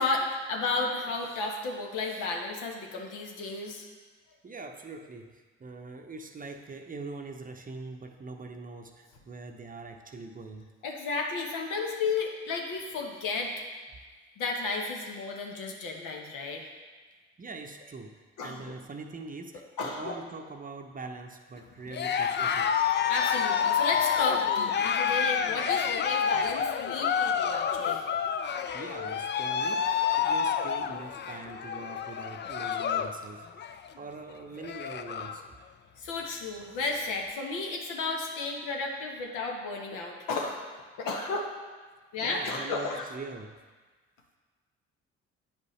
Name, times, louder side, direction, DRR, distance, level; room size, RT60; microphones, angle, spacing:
voice 1, 0.0-3.9 10.8-13.5 14.4-16.6 18.4-18.7 19.8-20.2 23.1-28.0 29.8-29.9 36.0-40.6 41.0-41.5 42.1-43.1, left 3 dB, 70° left, 1 dB, 1.2 m, -33 dB
voice 2, 4.4-10.6 17.4-22.7 28.7-33.4 34.0-35.4 42.2-43.6, right 3 dB, 25° right, 4 dB, 0.7 m, -43 dB
Cheering, 21.9-33.2 33.5-33.9 34.3-34.4 34.6-35.4, left 7 dB, 35° left, 0.5 m, -28 dB
8.9 x 5.2 x 3.3 m, 1.4 s
hypercardioid pair, 55°, 32 cm